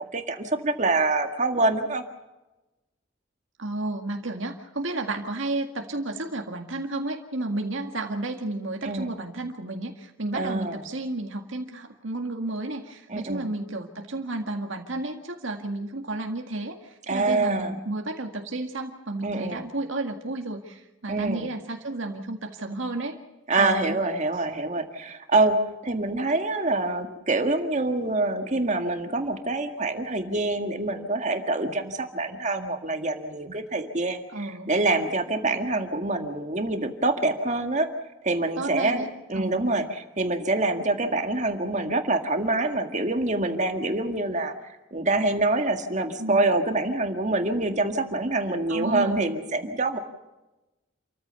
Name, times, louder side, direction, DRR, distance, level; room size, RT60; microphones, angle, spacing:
voice 1, 0.0-2.0 8.8-9.1 10.3-10.8 13.1-13.5 17.1-17.8 19.2-19.6 21.1-21.4 23.5-25.6 25.8-37.9 38.2-39.0 39.3-44.5 44.9-50.0, right 2 dB, 35° right, 5 dB, 1.9 m, -26 dB
voice 2, 3.6-23.2 23.6-24.0 24.3-24.5 34.3-34.7 38.6-39.1 39.3-39.7 46.2-46.4 48.7-49.3, right 2 dB, 80° right, 3 dB, 1.9 m, -32 dB
28.5 x 14.5 x 7.0 m, 1.0 s
head